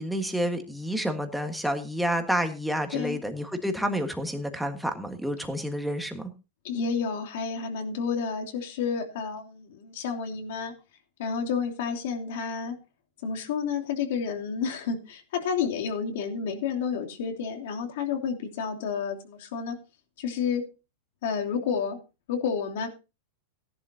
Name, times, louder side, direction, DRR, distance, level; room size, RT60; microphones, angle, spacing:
voice 1, 0.0-6.3, equal, ahead, 5 dB, 1.6 m, -29 dB
voice 2, 6.6-10.7 11.2-12.8 13.2-19.8 20.2-20.7 21.2-22.0 22.3-22.9, left 6 dB, 65° left, 2 dB, 3.0 m, -30 dB
16.5 x 11.0 x 2.8 m, 0.29 s
supercardioid pair, 160°, 0 cm